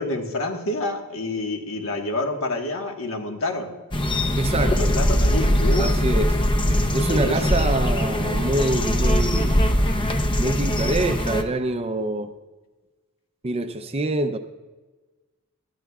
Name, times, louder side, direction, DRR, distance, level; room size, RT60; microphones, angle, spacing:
voice 1, 0.0-3.8 4.5-5.9 6.9-7.4, left 2 dB, 65° left, 1.5 m, -28 dB
sound 1, 3.9-11.4, equal, 20° left, 0.7 m, -21 dB
voice 2, 4.4-5.0 5.8-6.4 6.9-9.6 10.4-12.3 13.4-14.4, right 2 dB, 25° right, 0.6 m, -25 dB
19.0 x 13.0 x 2.4 m
head